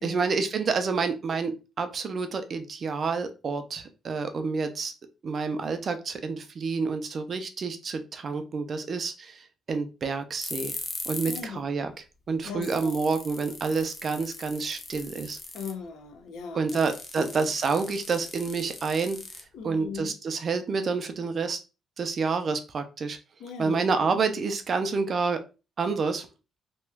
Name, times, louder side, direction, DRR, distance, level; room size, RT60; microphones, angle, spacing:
voice 1, 0.0-4.9 5.2-10.7 11.1-11.9 12.3-15.4 16.5-19.2 19.6-21.6 22.0-23.2 23.6-25.4 25.8-26.3, right 4 dB, 35° right, 0.4 m, -28 dB
sound 1, 10.4-11.5 11.8-11.9 12.3-12.4 12.6-15.8 16.7-19.8, left 3 dB, 25° left, 0.5 m, -39 dB
voice 2, 11.3-11.6 12.4-12.9 15.5-16.8 17.2-17.5 19.5-20.1 23.4-23.8 24.1-24.2, left 5 dB, 75° left, 0.6 m, -38 dB
2.9 x 2.2 x 3.3 m
cardioid pair, 160°, 0 cm